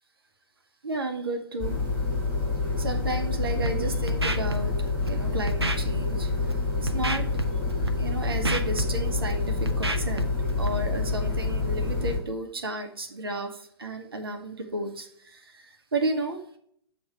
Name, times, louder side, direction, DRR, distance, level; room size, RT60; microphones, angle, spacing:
voice 1, 0.8-1.8 2.8-4.7 5.1-6.3 6.8-7.2 8.0-10.2 10.6-16.6, right 2 dB, 65° right, 4 dB, 1.1 m, -32 dB
sound 1, 1.6-12.2, left 3 dB, 10° left, 3.4 m, -27 dB
Scratching (performance technique), 3.5-3.7 4.1-4.6 4.9-5.1 5.5-5.8 6.3-6.5 6.9-7.4 7.7-7.9 8.2-9.3 9.7-10.2 10.5-10.7, right 2 dB, 85° right, 0.6 m, -29 dB
7.8 x 3.2 x 6.0 m, 0.64 s
figure-of-eight pair, 115°, 13 cm